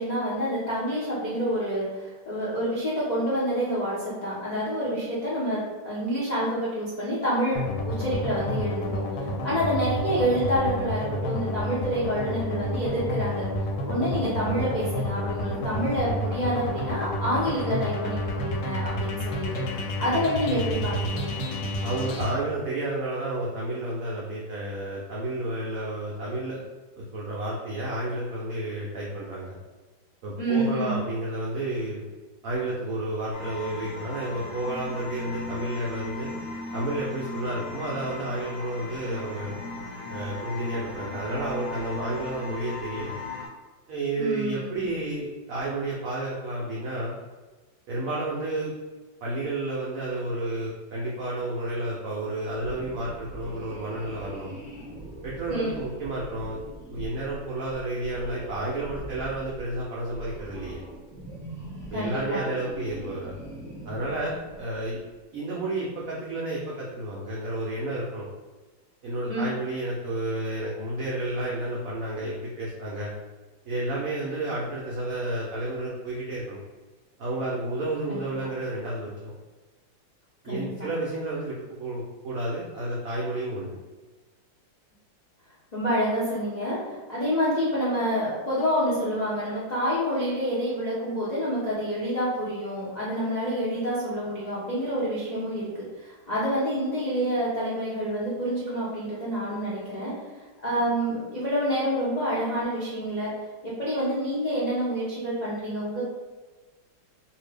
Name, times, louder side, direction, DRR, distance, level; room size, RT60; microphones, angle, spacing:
voice 1, 0.0-7.6 7.8-13.4 13.8-21.3 30.4-31.0 44.2-44.8 55.5-55.8 61.9-62.4 69.3-69.5 78.1-78.3 80.4-80.7 85.7-95.7 96.0-100.1 100.6-103.3 103.6-106.0, equal, 65° left, -9 dB, 0.4 m, -28 dB
sound 1, 7.6-22.3, left 1 dB, 90° left, 1.3 m, -30 dB
voice 2, 21.8-26.6 26.9-29.6 30.2-32.0 32.4-36.3 36.7-39.5 40.1-43.1 43.9-47.2 47.9-48.7 49.2-54.5 55.2-56.6 56.9-60.8 61.9-63.3 63.8-65.0 65.3-68.3 69.0-73.1 73.6-76.6 77.2-79.3 80.4-83.7, right 1 dB, 85° right, -4 dB, 0.7 m, -31 dB
sound 2, 33.3-43.5, left 3 dB, 45° left, 1.1 m, -37 dB
sound 3, 52.5-65.0, right 1 dB, 10° left, 0.8 m, -42 dB
2.8 x 2.7 x 3.3 m, 1.3 s
omnidirectional pair, 2.1 m